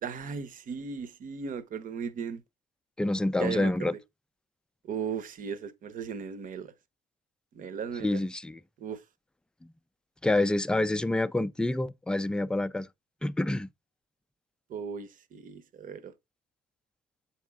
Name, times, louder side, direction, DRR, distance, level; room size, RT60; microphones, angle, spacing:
voice 1, 0.0-2.4 3.4-3.9 4.8-6.7 7.5-8.2 8.8-9.0 14.7-16.1, right 6 dB, 50° right, 0.9 m, -36 dB
voice 2, 3.0-3.9 8.0-8.6 9.6-9.7 10.2-12.9 13.2-13.7, left 2 dB, 5° left, 0.3 m, -27 dB
7.2 x 4.3 x 3.5 m
cardioid pair, 110°, 17 cm